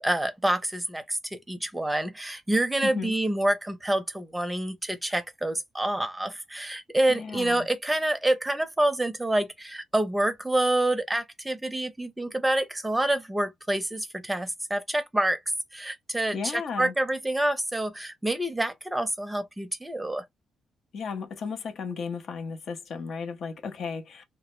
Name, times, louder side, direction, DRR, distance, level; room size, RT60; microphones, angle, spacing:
voice 1, 0.0-15.4 15.7-20.3, right 1 dB, 10° right, 0.6 m, -27 dB
voice 2, 2.8-3.1 7.1-7.7 16.3-16.9 20.9-24.2, left 5 dB, 60° left, 0.6 m, -34 dB
2.2 x 2.0 x 3.0 m
cardioid pair, 90°, 0 cm